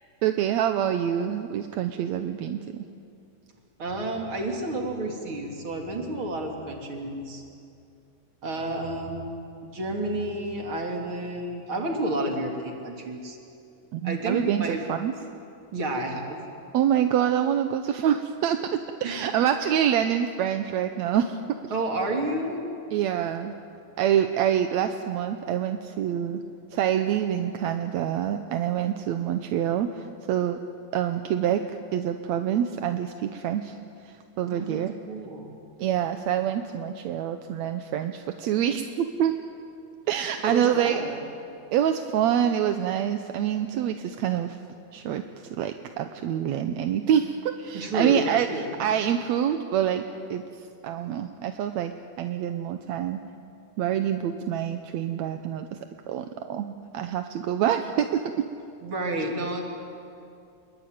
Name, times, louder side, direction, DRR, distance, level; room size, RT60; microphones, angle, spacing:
voice 1, 0.2-2.9 13.9-15.1 16.7-21.4 22.9-23.6 24.0-26.4 26.7-30.6 30.9-33.8 34.0-35.0 35.8-39.3 40.1-41.0 41.7-44.6 44.9-45.2 45.5-50.0 50.3-51.9 52.2-53.2 53.8-55.8 56.1-58.5, right 10 dB, 70° right, 7 dB, 1.9 m, -26 dB
voice 2, 3.8-7.4 8.4-9.4 9.7-13.4 14.0-14.8 15.7-16.4 19.0-19.2 21.7-22.6 34.5-34.8 35.1-35.6 40.4-41.2 47.7-48.9 58.8-59.6, right 1 dB, 35° right, 1 dB, 3.9 m, -30 dB
28.5 x 22.0 x 9.4 m, 2.5 s
omnidirectional pair, 3.9 m